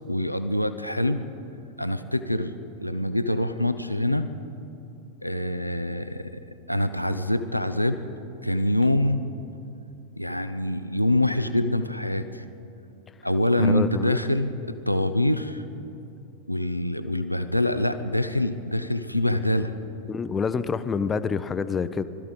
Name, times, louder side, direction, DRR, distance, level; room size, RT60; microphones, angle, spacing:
voice 1, 0.1-1.2 1.8-2.5 2.8-4.3 5.2-6.4 6.7-8.0 8.4-9.2 10.2-12.4 13.2-15.6 16.5-19.7, left 1 dB, 90° left, 10 dB, 0.6 m, -25 dB
voice 2, 13.6-14.2 20.1-22.0, left 5 dB, 20° left, 13 dB, 0.6 m, -27 dB
20.5 x 13.5 x 5.2 m, 2.7 s
figure-of-eight pair, 90°, 0 cm